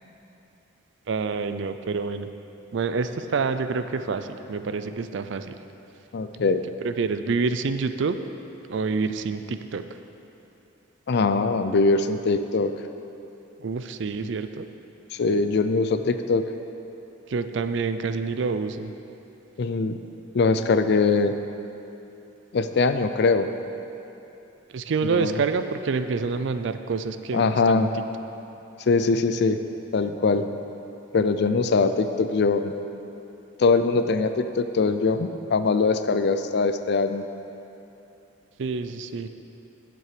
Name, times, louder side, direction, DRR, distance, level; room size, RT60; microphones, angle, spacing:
voice 1, 1.1-2.3 2.7-5.6 6.8-8.2 8.7-9.8 13.6-14.7 17.3-18.9 24.7-27.9 38.6-39.3, right 4 dB, 60° right, 10 dB, 0.4 m, -27 dB
voice 2, 6.1-6.6 11.1-12.7 15.1-16.5 19.6-20.0 20.3-21.4 22.5-23.5 25.0-25.4 27.3-27.9 28.9-29.6 29.9-30.5 31.1-32.7 33.6-37.2, left 4 dB, 55° left, 10 dB, 0.4 m, -22 dB
9.5 x 7.7 x 5.0 m, 2.9 s
head